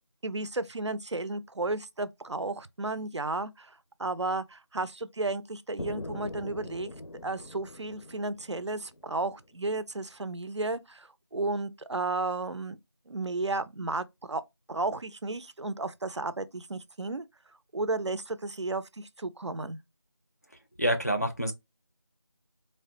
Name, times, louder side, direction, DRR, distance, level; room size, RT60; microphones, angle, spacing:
voice 1, 0.2-6.9 7.2-12.8 13.1-14.4 14.7-17.2 17.7-19.8, right 2 dB, 75° right, 0.4 m, -33 dB
sound 1, 5.8-9.7, left 1 dB, 85° left, 0.6 m, -42 dB
voice 2, 20.8-21.5, equal, 35° left, 0.4 m, -27 dB
3.2 x 2.1 x 2.7 m
figure-of-eight pair, 175°, 15 cm